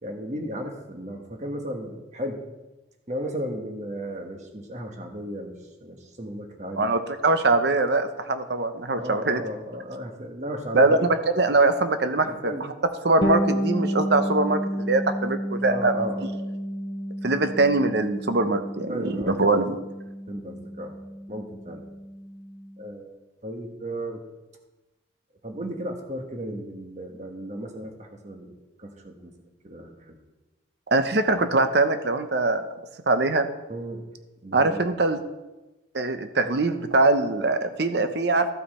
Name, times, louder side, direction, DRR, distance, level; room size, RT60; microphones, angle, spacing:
voice 1, 0.0-2.4 3.1-5.5 5.8-6.9 9.0-11.0 12.0-12.7 15.7-16.3 18.9-19.7 20.3-21.0 21.3-21.9 22.8-24.2 25.4-29.3 29.6-30.2 33.7-34.1 34.4-34.8, equal, 35° right, 3 dB, 1.3 m, -35 dB
voice 2, 6.8-9.4 10.7-12.5 13.0-16.1 17.2-19.8 30.9-32.6 33.1-33.5 34.5-35.2 35.9-38.5, right 2 dB, 55° right, 9 dB, 0.7 m, -22 dB
Bass guitar, 13.2-22.8, equal, 25° left, 0.8 m, -31 dB
14.0 x 5.6 x 4.2 m, 1.1 s
head